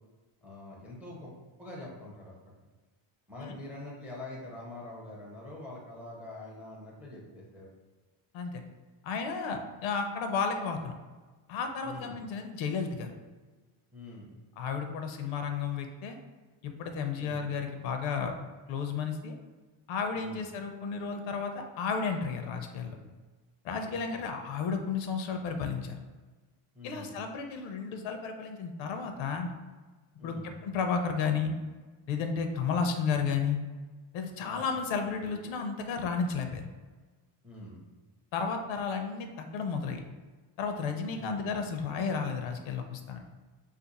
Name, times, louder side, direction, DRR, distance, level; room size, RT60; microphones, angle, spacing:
voice 1, 0.4-2.5 3.3-7.7 11.8-12.2 13.9-14.4 17.2-17.5 20.1-20.4 23.8-24.2 26.7-27.2 30.2-30.5 32.6-32.9 34.4-34.6 37.4-37.8 41.1-41.4, left 1 dB, 5° right, -4 dB, 0.4 m, -45 dB
voice 2, 9.0-10.9 11.5-13.1 14.6-16.2 16.6-18.3 18.7-19.4 19.9-23.0 23.6-26.0 26.8-29.5 30.2-31.6 32.1-33.6 34.1-36.6 38.3-40.0 40.6-43.2, left 5 dB, 70° left, 5 dB, 0.6 m, -32 dB
2.5 x 2.4 x 4.0 m, 1.3 s
cardioid pair, 140°, 49 cm